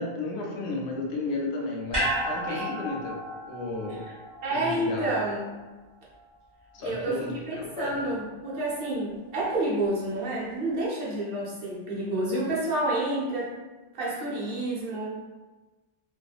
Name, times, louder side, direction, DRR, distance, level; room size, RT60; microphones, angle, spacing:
voice 1, 0.0-3.2 3.5-4.0 4.6-5.2 6.7-8.1, left 2 dB, 85° left, -1 dB, 0.9 m, -33 dB
sound 1, 1.9-6.3 6.6-6.7, right 1 dB, 30° right, 1.1 m, -33 dB
voice 2, 4.4-5.5 6.8-13.6 13.9-15.2, right 1 dB, 60° right, -6 dB, 0.9 m, -29 dB
2.6 x 2.3 x 2.3 m, 1.2 s
omnidirectional pair, 1.1 m